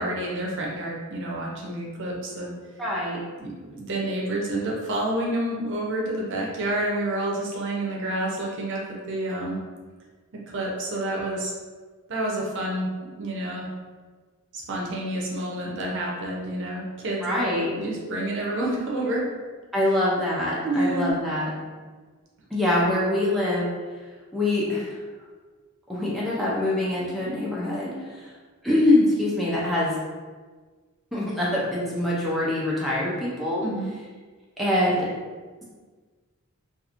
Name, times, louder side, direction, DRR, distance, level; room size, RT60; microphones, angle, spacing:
voice 1, 0.0-2.5 3.4-8.8 9.1-9.6 10.5-11.5 12.1-12.9 13.2-13.7 14.7-17.2 17.8-19.3 20.6-21.1 33.6-33.9, right 1 dB, 55° right, -2 dB, 0.6 m, -28 dB
voice 2, 2.8-3.2 17.2-17.7 19.7-21.5 22.5-23.7 24.3-25.0 25.9-28.3 28.6-30.0 31.1-33.6 34.6-35.1, left 1 dB, ahead, -8 dB, 0.4 m, -24 dB
2.9 x 2.4 x 2.4 m, 1.4 s
head